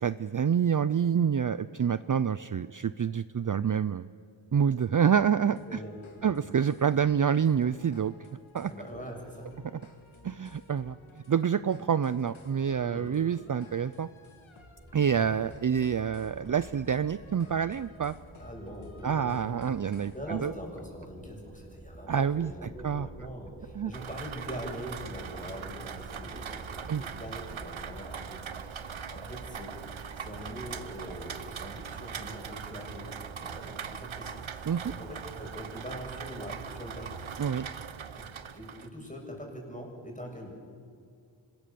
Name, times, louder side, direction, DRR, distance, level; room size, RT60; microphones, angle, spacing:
voice 1, 0.0-4.1 4.5-5.8 6.2-8.1 8.5-8.7 10.2-11.0 11.3-14.1 14.9-18.1 19.0-20.5 22.1-23.1 23.8-23.9 26.9-27.0 34.7-34.8 37.4-37.7, right 7 dB, 45° right, 15 dB, 0.5 m, -27 dB
sound 1, 5.1-20.2, left 2 dB, 90° left, 2.4 m, -55 dB
voice 2, 5.6-6.4 8.6-9.6 12.8-13.2 15.1-15.3 18.4-19.5 20.1-29.7 30.1-37.1 38.1-38.3 38.5-40.5, equal, 15° left, 0 dB, 6.9 m, -43 dB
sound 2, 14.8-31.5, equal, 15° right, 3.0 m, -50 dB
Rain, 23.9-38.9, right 7 dB, 80° right, 1.1 m, -41 dB
25.5 x 20.5 x 6.9 m, 2.4 s
wide cardioid pair, 65°, 47 cm